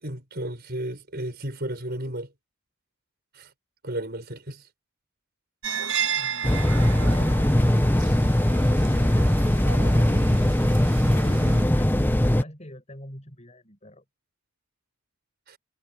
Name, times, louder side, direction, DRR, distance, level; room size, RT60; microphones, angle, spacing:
voice 1, 0.0-2.3 3.3-3.5 3.8-4.7 15.5-15.6, right 1 dB, 45° right, 5.5 m, -33 dB
sound 1, 5.6-11.6, right 6 dB, 65° right, 5.9 m, -33 dB
sound 2, 6.4-12.4, left 1 dB, 10° left, 0.7 m, -20 dB
voice 2, 11.4-12.0 12.3-14.0, equal, 30° left, 7.3 m, -47 dB
head